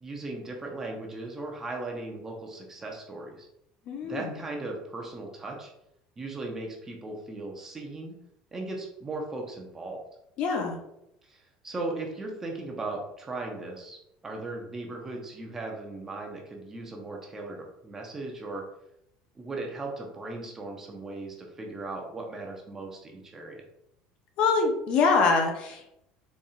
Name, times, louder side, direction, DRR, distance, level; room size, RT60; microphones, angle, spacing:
voice 1, 0.0-3.5 4.0-5.7 6.2-8.1 8.5-10.0 11.2-14.0 14.2-18.6 19.3-23.6, right 2 dB, 20° right, 0 dB, 0.9 m, -37 dB
voice 2, 3.9-4.4 10.4-10.8 24.4-25.9, left 4 dB, 55° left, 3 dB, 0.7 m, -24 dB
4.2 x 3.5 x 2.4 m, 0.81 s
supercardioid pair, 115°, 2 cm